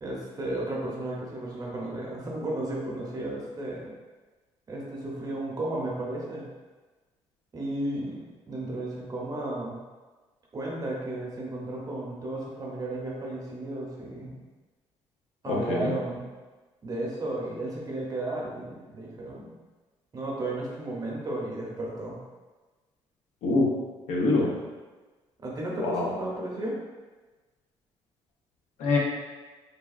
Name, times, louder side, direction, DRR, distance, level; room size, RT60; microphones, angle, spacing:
voice 1, 0.0-3.9 4.7-6.5 7.5-9.8 10.5-14.4 15.4-16.3 16.8-19.5 20.1-22.2 25.4-26.8, right 1 dB, 30° right, -3 dB, 0.7 m, -33 dB
voice 2, 15.5-15.9 23.4-23.7 24.1-24.5 25.8-26.0 28.8-29.0, left 3 dB, 85° left, -2 dB, 0.6 m, -24 dB
3.3 x 2.3 x 2.4 m, 1.3 s
cardioid pair, 100°, 12 cm